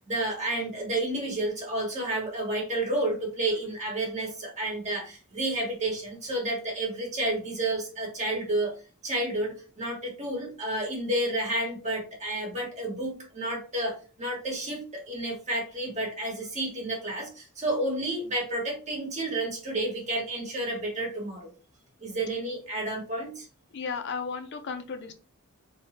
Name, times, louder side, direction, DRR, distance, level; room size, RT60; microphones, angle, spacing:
voice 1, 0.1-8.7 9.0-17.3 17.6-21.4 22.0-23.3, right 1 dB, 35° right, -1 dB, 1.2 m, -30 dB
voice 2, 23.7-25.1, left 5 dB, 50° left, 7 dB, 0.4 m, -34 dB
3.2 x 2.1 x 4.1 m, 0.36 s
head